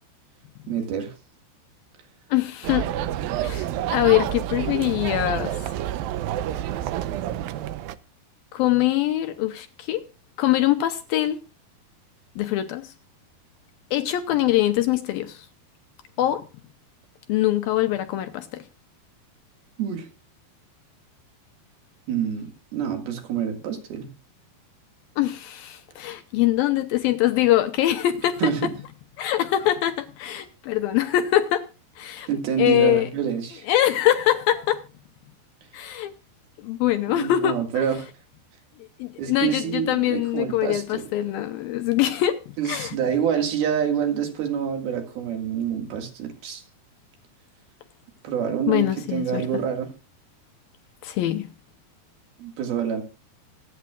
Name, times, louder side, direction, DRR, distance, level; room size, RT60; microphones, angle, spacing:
voice 1, 0.7-1.2 19.8-20.1 22.1-24.1 28.4-28.7 32.3-33.7 37.1-38.1 39.2-41.1 42.6-46.6 48.2-49.9 52.4-53.0, right 8 dB, 65° right, 3.7 m, -27 dB
voice 2, 2.3-2.9 3.4-5.6 8.5-10.0 10.4-11.4 12.4-12.9 13.9-15.5 16.2-16.4 17.3-18.6 25.2-28.7 29.2-31.7 32.0-32.3 32.6-33.1 33.7-34.8 35.7-36.1 36.6-37.8 39.0-43.0 48.7-49.5 51.0-51.5, left 13 dB, 75° left, 2.2 m, -23 dB
sound 1, 2.6-8.0, right 12 dB, 80° right, 2.1 m, -28 dB
25.5 x 9.6 x 2.4 m
omnidirectional pair, 4.9 m